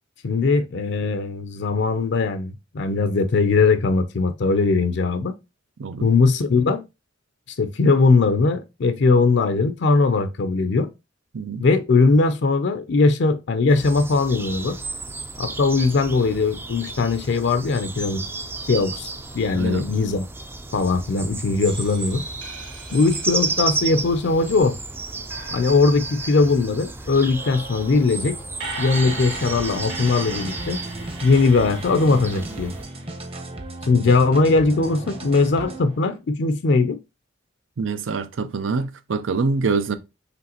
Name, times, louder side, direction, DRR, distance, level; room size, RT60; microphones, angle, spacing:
voice 1, 0.2-5.3 6.0-6.8 7.6-10.9 11.6-14.8 15.4-18.2 18.7-20.2 20.7-22.2 22.9-24.8 25.5-28.4 28.8-30.8 31.2-32.7 33.9-37.0, left 3 dB, 65° left, 0.5 m, -20 dB
voice 2, 5.8-6.1 11.3-11.7 19.6-19.9 37.8-40.0, right 4 dB, 85° right, 0.5 m, -25 dB
sound 1, 13.7-32.9, right 3 dB, 10° right, 0.3 m, -33 dB
sound 2, 21.6-24.8 25.3-33.7 34.7-36.2, right 3 dB, 65° right, 2.0 m, -39 dB
sound 3, 28.9-35.8, right 1 dB, 30° right, 0.8 m, -35 dB
5.1 x 3.3 x 2.8 m
head